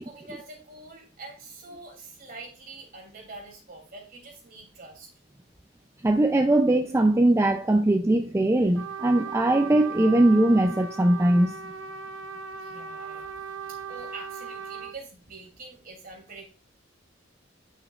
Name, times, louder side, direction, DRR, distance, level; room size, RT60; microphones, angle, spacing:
voice 1, 0.0-5.1 12.6-13.4 13.7-16.5, right 3 dB, 50° right, 2.8 m, -45 dB
voice 2, 6.0-11.6, right 1 dB, 15° right, 0.4 m, -21 dB
Trumpet, 8.8-15.0, right 6 dB, 80° right, 0.5 m, -38 dB
9.9 x 5.7 x 2.4 m
head